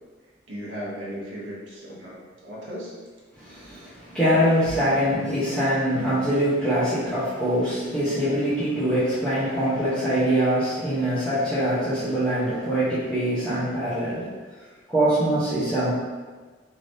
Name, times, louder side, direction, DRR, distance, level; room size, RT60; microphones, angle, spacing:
voice 1, 0.5-2.9, equal, 75° right, -5 dB, 1.0 m, -36 dB
voice 2, 3.4-14.3 14.9-15.9, equal, 5° left, -14 dB, 0.8 m, -23 dB
3.5 x 3.2 x 2.7 m, 1.4 s
head